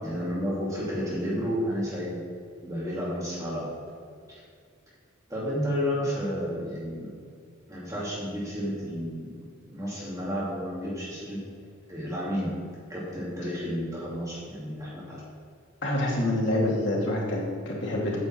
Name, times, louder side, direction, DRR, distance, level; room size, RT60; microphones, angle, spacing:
voice 1, 0.0-2.2 2.6-3.7 5.3-7.1 7.7-9.3 9.7-11.4 11.9-12.5 12.9-15.2, equal, 15° right, -7 dB, 2.3 m, -31 dB
voice 2, 15.8-18.2, left 1 dB, 60° left, -3 dB, 2.7 m, -26 dB
9.2 x 5.4 x 7.3 m, 2.2 s
head